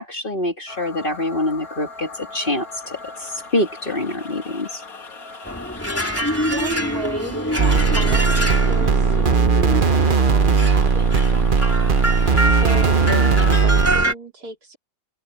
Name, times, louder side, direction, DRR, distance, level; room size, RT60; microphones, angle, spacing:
voice 1, 0.0-4.8, left 1 dB, 30° left, 2.6 m, -25 dB
sound 1, 0.7-13.6, left 3 dB, 60° left, 2.6 m, -39 dB
sound 2, 5.4-14.1, equal, 10° left, 3.6 m, -25 dB
voice 2, 5.8-12.0 12.4-14.8, right 4 dB, 70° right, 3.2 m, -35 dB
sound 3, 7.6-14.0, right 4 dB, 35° right, 1.1 m, -17 dB
omnidirectional pair, 1.7 m